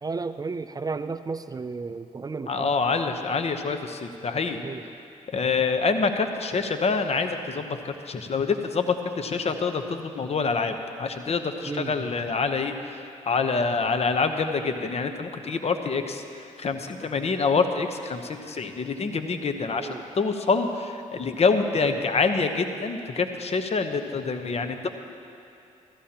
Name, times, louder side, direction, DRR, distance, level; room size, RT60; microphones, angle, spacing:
voice 1, 0.0-2.7 4.6-4.8 11.7-11.9 19.7-20.0, right 4 dB, 25° right, 11 dB, 0.4 m, -33 dB
voice 2, 2.5-4.6 5.3-16.2 16.6-24.9, left 4 dB, 45° left, 7 dB, 0.9 m, -26 dB
15.5 x 14.0 x 2.9 m, 2.6 s
supercardioid pair, 60°, 14 cm